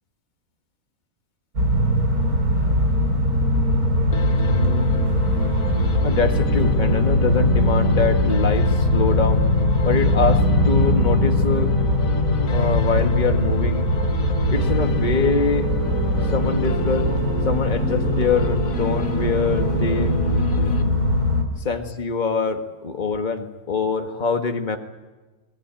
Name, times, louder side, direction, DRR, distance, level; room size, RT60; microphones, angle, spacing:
sound 1, 1.6-21.4, left 1 dB, 90° right, 4.0 m, -20 dB
sound 2, 4.1-21.3, left 6 dB, 65° left, 1.5 m, -34 dB
voice 1, 4.5-4.9 6.0-9.4 9.8-11.7 12.5-13.9 14.5-15.7 16.3-17.1 17.5-20.2 21.6-24.8, left 4 dB, 30° left, 5 dB, 1.8 m, -24 dB
23.5 x 21.0 x 9.0 m, 1.2 s
omnidirectional pair, 1.5 m